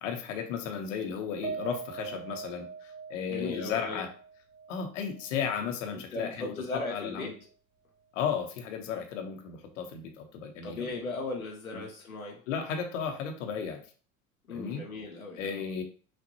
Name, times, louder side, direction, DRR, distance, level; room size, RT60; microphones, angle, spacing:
voice 1, 0.0-4.1 4.7-6.6 6.9-7.3 8.1-10.9 11.7-11.8 12.5-13.8 14.5-14.8 15.4-15.8, left 7 dB, 65° left, 5 dB, 1.0 m, -34 dB
Piano, 1.4-5.9 6.3-6.4 6.8-7.0, right 5 dB, 80° right, 0.8 m, -42 dB
voice 2, 3.3-4.0 6.1-7.3 10.6-12.4 14.5-15.6, left 3 dB, 90° left, 0 dB, 0.8 m, -37 dB
6.0 x 2.5 x 2.8 m, 0.40 s
figure-of-eight pair, 75°, 41 cm